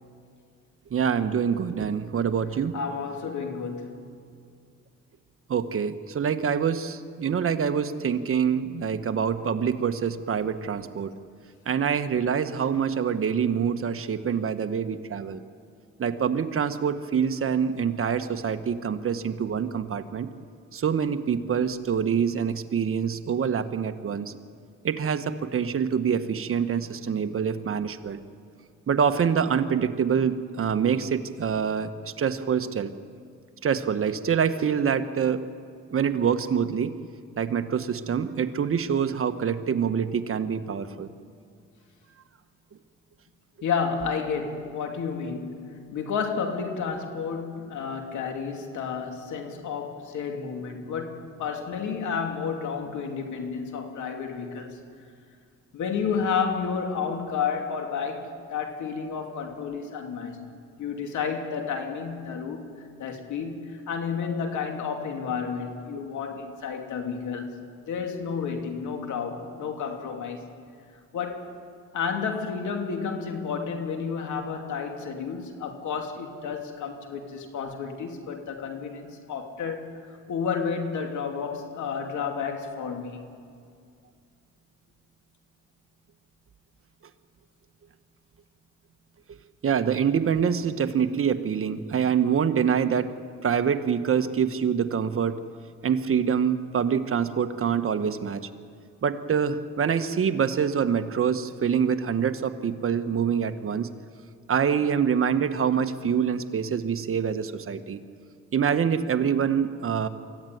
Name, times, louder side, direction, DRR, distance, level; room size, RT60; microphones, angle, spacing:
voice 1, 0.9-2.8 5.5-11.1 11.7-15.4 16.0-20.3 20.7-24.3 24.8-28.2 28.9-32.9 33.6-35.4 35.9-36.9 37.4-41.1 89.6-93.1 93.4-95.4 95.8-98.5 99.0-103.9 104.5-108.0 108.5-110.1, right 7 dB, 45° right, 9 dB, 1.3 m, -25 dB
voice 2, 2.7-4.1 43.6-54.8 55.7-60.5 60.8-62.7 63.0-67.6 67.9-70.4 71.1-71.5 71.9-79.8 80.3-83.2, left 6 dB, 75° left, 4 dB, 2.9 m, -31 dB
24.5 x 15.0 x 9.3 m, 2.3 s
cardioid pair, 90°, 30 cm